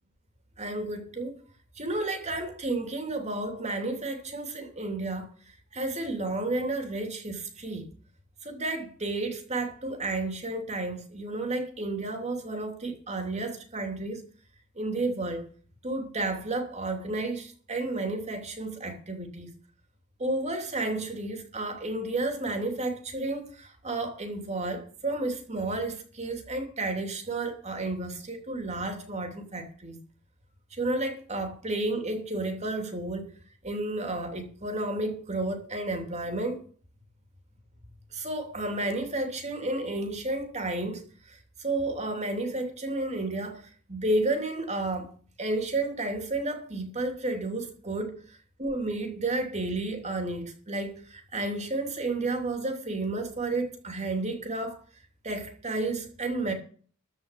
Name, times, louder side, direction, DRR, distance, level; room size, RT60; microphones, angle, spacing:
voice 1, 0.6-1.3 1.8-5.3 5.7-7.8 8.4-14.2 14.8-15.5 15.8-19.5 20.2-30.0 30.7-33.3 33.6-36.6 38.1-43.6 43.9-45.1 45.4-48.2 48.6-54.8 55.2-56.5, right 2 dB, 30° right, 2.8 m, -31 dB
14.0 x 5.2 x 8.9 m
head